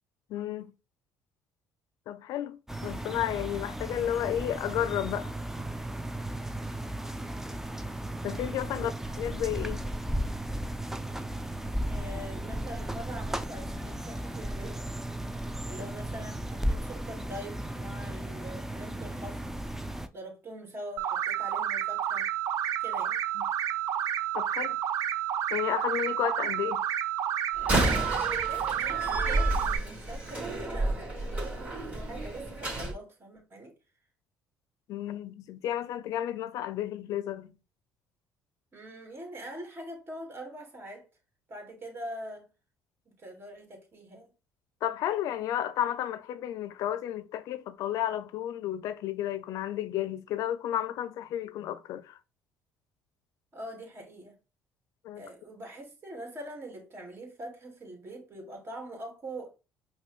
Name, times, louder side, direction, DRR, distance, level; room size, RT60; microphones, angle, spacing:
voice 1, 0.3-0.7 2.1-5.4 8.2-9.8 23.4-23.5 24.3-24.8 25.5-26.8 34.9-37.5 44.8-52.2 55.0-55.2, left 11 dB, 70° left, 0.5 m, -32 dB
sound 1, 2.7-20.1, right 1 dB, 5° right, 0.5 m, -35 dB
voice 2, 11.6-14.8 15.7-19.4 20.1-22.3 22.8-23.2 28.5-33.8 38.7-41.0 41.5-42.5 43.1-44.3 53.5-54.4 55.2-59.5, right 1 dB, 40° right, 1.9 m, -43 dB
sound 2, 21.0-29.8, right 10 dB, 65° right, 0.4 m, -30 dB
Slam, 27.5-32.9, right 1 dB, 20° right, 2.5 m, -31 dB
5.2 x 2.2 x 3.1 m
supercardioid pair, 80°, 6 cm